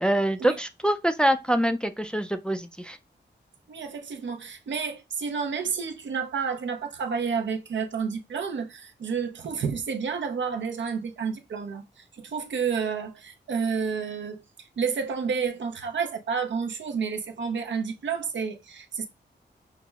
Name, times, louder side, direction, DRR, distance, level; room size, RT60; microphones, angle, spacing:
voice 1, 0.0-3.0, right 1 dB, 5° left, 0.3 m, -25 dB
voice 2, 3.7-19.1, right 6 dB, 85° right, 0.6 m, -30 dB
5.8 x 2.0 x 2.3 m
wide cardioid pair, 125°, 19 cm